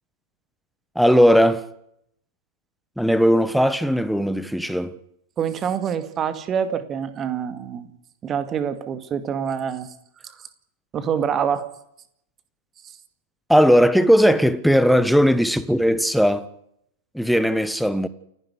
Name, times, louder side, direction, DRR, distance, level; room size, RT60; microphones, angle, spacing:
voice 1, 0.9-1.7 3.0-5.0 13.5-16.5 17.1-18.1, equal, ahead, 1.3 m, -18 dB
voice 2, 5.4-7.9 8.2-9.9 10.2-10.3 10.9-11.7, right 8 dB, 25° right, 2.2 m, -26 dB
29.0 x 11.0 x 9.9 m
figure-of-eight pair, 100°, 0 cm